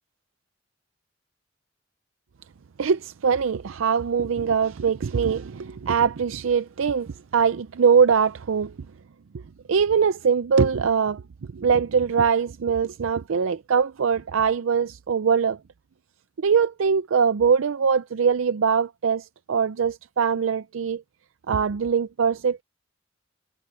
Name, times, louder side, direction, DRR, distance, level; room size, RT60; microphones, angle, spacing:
voice 1, 2.8-8.7 9.7-11.2 11.5-15.6 16.4-21.0 21.5-22.6, right 6 dB, 85° right, 0.5 m, -22 dB
head